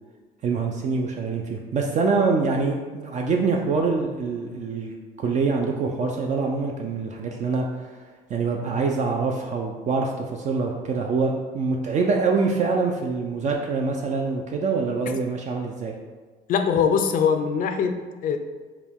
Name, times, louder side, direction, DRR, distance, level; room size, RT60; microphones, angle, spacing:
voice 1, 0.4-8.0 8.3-15.9, right 4 dB, 45° right, 1 dB, 0.4 m, -25 dB
voice 2, 16.5-18.4, left 6 dB, 55° left, 7 dB, 0.4 m, -22 dB
4.7 x 2.2 x 3.5 m, 1.4 s
cardioid pair, 110°, 17 cm